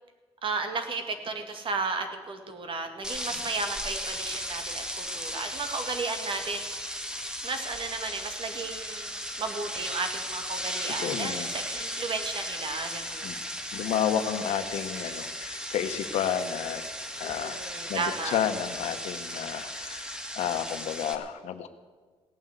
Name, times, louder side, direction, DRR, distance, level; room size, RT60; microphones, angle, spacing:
voice 1, 0.4-7.0 7.4-13.3 17.2-18.4, right 4 dB, 50° right, 6 dB, 2.2 m, -34 dB
sound 1, 3.0-21.2, equal, 5° right, 1.6 m, -36 dB
voice 2, 11.0-11.5 13.2-13.4 13.7-16.8 17.2-17.6 17.9-21.7, left 9 dB, 85° left, 9 dB, 1.1 m, -31 dB
17.0 x 9.2 x 8.2 m, 1.4 s
cardioid pair, 95°, 11 cm